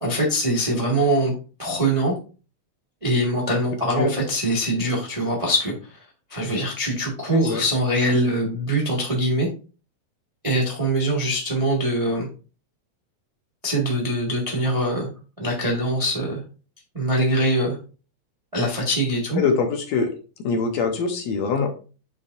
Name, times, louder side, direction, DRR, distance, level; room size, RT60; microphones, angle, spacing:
voice 1, 0.0-1.3 1.6-2.1 3.0-6.0 6.3-9.5 10.4-12.3 13.6-15.1 15.4-16.4 16.9-17.8 18.5-19.4, right 1 dB, 20° right, -3 dB, 0.8 m, -23 dB
voice 2, 7.3-7.6 19.4-20.1 20.4-21.7, left 5 dB, 70° left, 4 dB, 2.0 m, -23 dB
8.4 x 4.5 x 2.5 m, 0.35 s
omnidirectional pair, 3.4 m